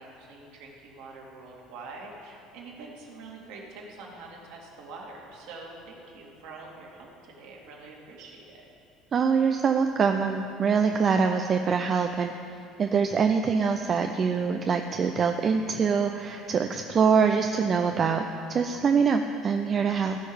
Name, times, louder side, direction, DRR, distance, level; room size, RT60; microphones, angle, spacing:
voice 1, 0.0-8.6, right 3 dB, 60° right, -2 dB, 2.5 m, -45 dB
voice 2, 9.1-12.3 12.8-18.2 18.5-20.2, right 6 dB, 40° right, 5 dB, 0.6 m, -24 dB
15.5 x 6.5 x 8.9 m, 2.7 s
figure-of-eight pair, 60°, 0 cm